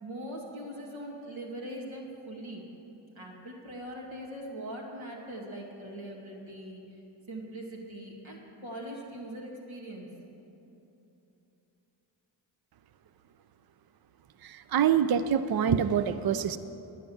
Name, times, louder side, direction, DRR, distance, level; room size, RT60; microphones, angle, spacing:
voice 1, 0.0-2.6 3.2-6.8 7.3-10.1, right 1 dB, 70° right, -2 dB, 2.3 m, -41 dB
voice 2, 14.4-16.6, right 8 dB, 50° right, 12 dB, 0.6 m, -25 dB
11.5 x 9.2 x 7.1 m, 3.0 s
supercardioid pair, 40°, 48 cm